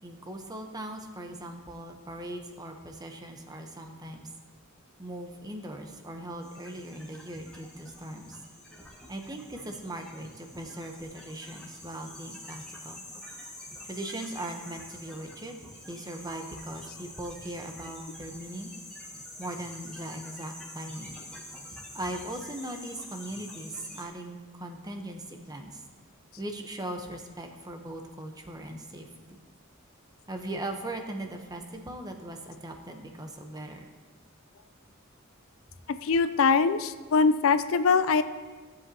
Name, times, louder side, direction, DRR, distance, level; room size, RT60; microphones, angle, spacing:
voice 1, 0.0-4.3 5.0-8.4 9.1-13.0 13.8-18.7 19.4-21.2 21.9-25.8 26.4-29.4 30.3-33.8, right 1 dB, 20° right, 4 dB, 0.8 m, -39 dB
sound 1, 6.4-24.0, left 1 dB, 5° left, 1.7 m, -46 dB
voice 2, 36.0-38.2, left 5 dB, 70° left, 12 dB, 0.4 m, -22 dB
16.5 x 7.7 x 2.8 m, 1.4 s
head